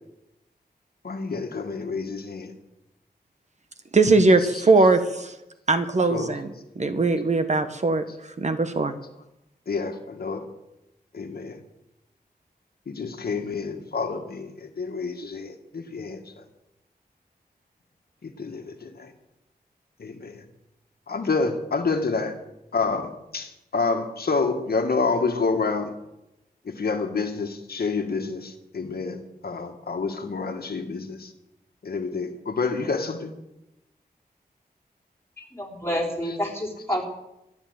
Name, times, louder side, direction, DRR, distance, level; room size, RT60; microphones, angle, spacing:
voice 1, 1.0-2.5 4.4-4.9 6.0-6.3 9.7-10.4 11.1-11.6 12.9-16.2 18.2-19.1 20.0-20.3 21.1-22.3 22.7-25.9 26.7-31.3 31.8-33.3, left 4 dB, 70° left, 5 dB, 1.6 m, -28 dB
voice 2, 3.9-5.3 5.7-6.5 6.8-8.0 8.4-8.9, right 3 dB, 45° right, 9 dB, 1.0 m, -20 dB
voice 3, 35.4-37.1, equal, 15° left, -1 dB, 4.1 m, -29 dB
13.0 x 9.9 x 8.0 m, 0.90 s
wide cardioid pair, 100°, 17 cm